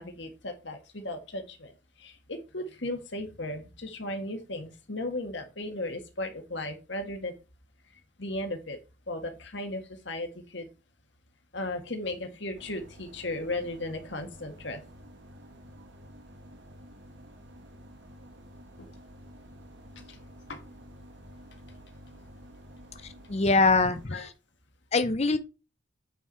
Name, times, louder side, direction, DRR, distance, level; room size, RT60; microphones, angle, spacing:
voice 1, 0.0-1.7 2.0-7.3 8.2-8.8 9.1-10.7 11.5-14.8 18.8-18.9 20.0-20.2 20.5-20.6 24.1-24.3, left 1 dB, 60° left, 1.8 m, -36 dB
sound 1, 12.5-24.1, equal, 60° right, 1.2 m, -50 dB
voice 2, 23.3-24.3 24.9-25.4, left 3 dB, 35° left, 0.6 m, -23 dB
9.0 x 4.7 x 4.7 m
head